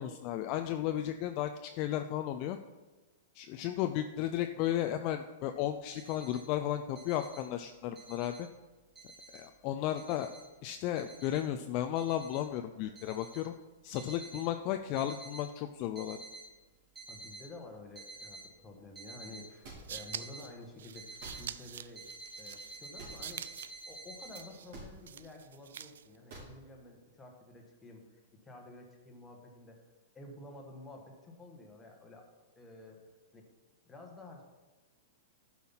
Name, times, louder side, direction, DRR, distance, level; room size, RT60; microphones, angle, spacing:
voice 1, 0.0-2.6 3.3-8.5 9.3-10.3 10.6-13.5 13.8-16.2, left 11 dB, 35° left, 6 dB, 0.4 m, -34 dB
sound 1, 5.7-6.4 6.9-7.4 7.8-8.4 8.9-9.4 9.9-10.5 10.9-11.4 11.9-12.4 12.9-13.4 13.9-14.4 14.9-15.4 15.8-16.4 16.9-17.4 17.9-18.4 18.9-19.4 19.9-20.4 20.9-21.4 21.9-24.5, right 3 dB, 15° right, 2.8 m, -49 dB
voice 2, 17.1-22.1 22.4-23.5 23.9-28.0 28.4-29.8 30.1-32.3 32.6-33.0 33.3-33.5 33.8-34.4, left 2 dB, 10° left, 0 dB, 1.4 m, -51 dB
sound 2, 19.6-19.8 21.2-21.4 23.0-23.2 24.7-24.9 26.3-26.5, right 3 dB, 55° right, 3.4 m, -46 dB
sound 3, 19.6-26.2, right 9 dB, 80° right, 0.4 m, -46 dB
10.5 x 5.7 x 5.7 m, 1.3 s
supercardioid pair, 160°, 0 cm